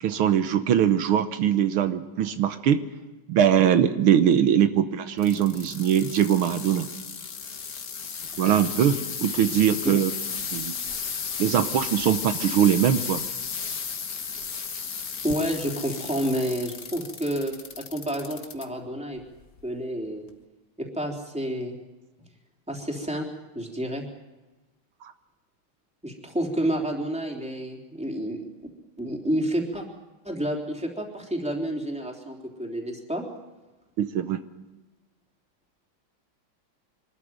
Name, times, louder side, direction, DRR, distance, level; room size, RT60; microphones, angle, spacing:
voice 1, 0.0-2.8 3.3-6.9 8.4-10.1 10.5-10.8 11.4-13.2 34.0-34.4, right 9 dB, 80° right, 10 dB, 1.9 m, -22 dB
sound 1, 5.2-18.6 19.2-19.6 20.3-20.4, left 6 dB, 45° left, 1.7 m, -34 dB
voice 2, 15.2-19.2 19.6-20.2 20.8-21.8 22.7-23.3 23.5-24.0 26.0-28.4 29.0-29.8 30.2-33.2, right 1 dB, 5° right, 0 dB, 3.4 m, -29 dB
24.5 x 13.5 x 9.1 m, 1.1 s
omnidirectional pair, 2.3 m